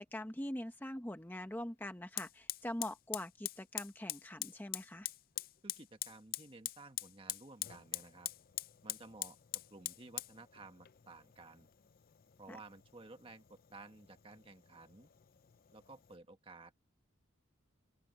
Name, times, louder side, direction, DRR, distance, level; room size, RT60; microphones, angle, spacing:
voice 1, 0.0-5.1 12.5-12.6, left 1 dB, 10° left, 0.8 m, -43 dB
Fire, 1.2-1.3 2.2-16.2, left 15 dB, 45° left, 0.4 m, -45 dB
voice 2, 5.6-8.3 8.8-9.4 9.7-11.7 12.4-15.1 15.7-16.7, right 3 dB, 25° right, 1.4 m, -55 dB
open air
head